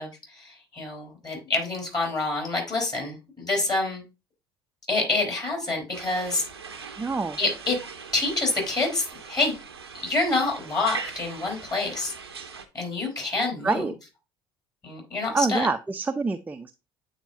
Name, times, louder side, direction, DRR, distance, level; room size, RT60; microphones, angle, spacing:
voice 1, 0.0-4.0 4.9-6.5 7.4-9.6 10.0-12.1 12.7-13.8 14.8-15.7, left 2 dB, 30° left, 1 dB, 3.5 m, -27 dB
sound 1, 5.9-12.7, right 5 dB, 90° right, 0.6 m, -40 dB
voice 2, 7.0-7.4 13.6-13.9 15.3-16.7, right 4 dB, 15° right, 7 dB, 0.4 m, -26 dB
8.9 x 4.2 x 2.6 m, 0.27 s
figure-of-eight pair, 60°, 13 cm